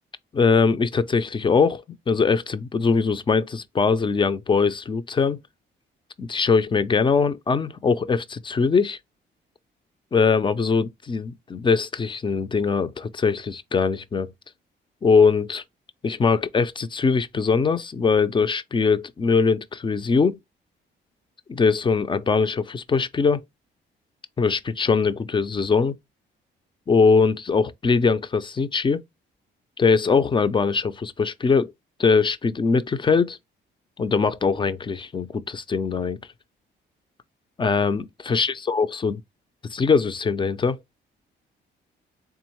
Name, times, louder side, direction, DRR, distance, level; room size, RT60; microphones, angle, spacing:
voice 1, 0.3-5.4 6.2-9.0 10.1-14.3 15.0-15.6 16.0-20.3 21.5-23.4 24.4-25.9 26.9-29.0 29.8-31.7 32.0-33.4 34.0-36.2 37.6-39.2 39.6-40.8, left 5 dB, 25° left, 0.4 m, -21 dB
3.6 x 3.5 x 3.0 m
cardioid pair, 90°, 20 cm